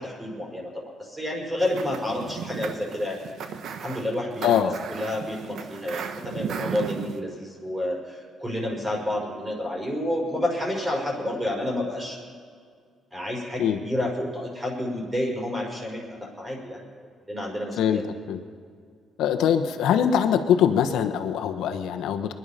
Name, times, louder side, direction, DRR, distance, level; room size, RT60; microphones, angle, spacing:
voice 1, 0.0-3.4 3.8-12.2 13.1-18.0, left 1 dB, 15° right, -1 dB, 5.4 m, -30 dB
sound 1, 1.6-7.2, right 6 dB, 70° right, 1.2 m, -35 dB
voice 2, 4.4-4.7 13.6-13.8 17.8-18.0 18.3-18.4 19.2-22.3, left 9 dB, 85° left, 8 dB, 1.2 m, -22 dB
22.5 x 11.0 x 5.7 m, 2.1 s
cardioid pair, 90°, 0 cm